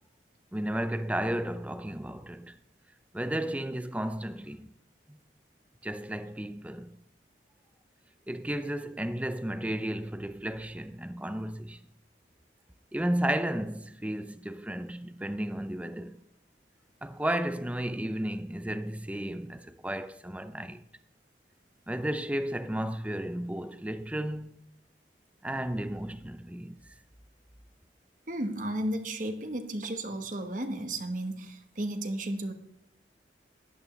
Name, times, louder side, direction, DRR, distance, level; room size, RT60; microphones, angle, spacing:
voice 1, 0.5-2.5 3.1-4.7 5.1-5.2 5.8-7.0 8.3-11.8 12.9-16.2 17.0-20.8 21.9-24.6 25.4-26.7, right 1 dB, 10° right, 0.5 m, -33 dB
voice 2, 28.3-32.5, right 1 dB, 45° right, 1.2 m, -33 dB
15.0 x 11.0 x 3.3 m
head